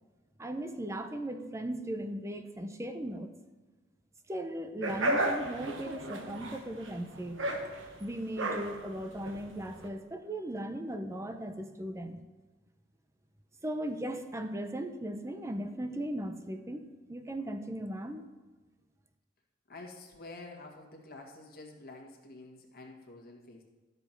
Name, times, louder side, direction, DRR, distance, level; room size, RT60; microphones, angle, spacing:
voice 1, 0.4-3.3 4.3-7.5 8.0-12.2 13.6-18.3, right 1 dB, 15° right, 7 dB, 0.7 m, -37 dB
sound 1, 4.8-9.9, right 1 dB, 80° right, 1.2 m, -34 dB
voice 2, 19.7-23.6, left 2 dB, 55° left, 0 dB, 1.8 m, -48 dB
13.0 x 6.8 x 4.5 m, 1.2 s
head